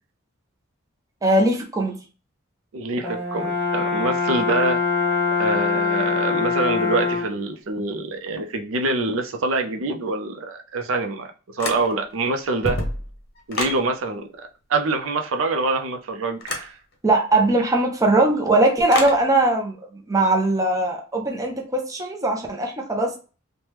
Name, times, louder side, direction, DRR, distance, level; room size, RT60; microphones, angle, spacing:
voice 1, 1.2-2.0 17.0-19.8 20.1-23.2, right 2 dB, 15° right, 0.5 m, -20 dB
voice 2, 2.7-4.8 5.4-12.8 13.5-14.3 14.7-16.8, right 3 dB, 75° right, 0.5 m, -25 dB
Brass instrument, 3.0-7.4, left 4 dB, 10° left, 0.9 m, -23 dB
sound 1, 11.6-12.2 12.5-13.8 16.4-16.7 18.9-19.2, left 2 dB, 50° left, 0.7 m, -28 dB
3.3 x 2.1 x 2.9 m
head